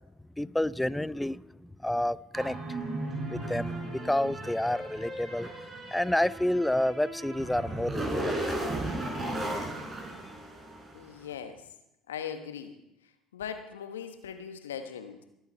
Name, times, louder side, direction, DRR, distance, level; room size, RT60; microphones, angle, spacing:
voice 1, 0.4-2.6 3.3-5.5 5.9-8.5, left 1 dB, 5° left, 0.4 m, -29 dB
sound 1, 2.3-11.0, right 1 dB, 25° right, 4.8 m, -35 dB
voice 2, 10.9-11.6 12.1-12.7 13.3-15.2, left 8 dB, 80° left, 1.3 m, -39 dB
22.0 x 7.9 x 4.4 m
figure-of-eight pair, 60°, 0 cm